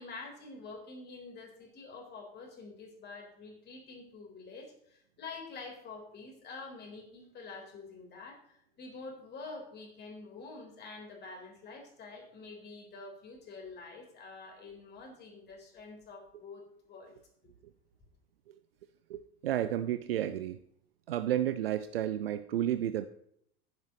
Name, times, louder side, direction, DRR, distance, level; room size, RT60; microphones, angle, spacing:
voice 1, 0.0-17.1, left 3 dB, 35° left, 1 dB, 4.0 m, -47 dB
voice 2, 19.1-20.6 21.1-23.1, right 11 dB, 65° right, 11 dB, 0.6 m, -31 dB
11.0 x 10.5 x 3.0 m, 0.69 s
figure-of-eight pair, 75°, 31 cm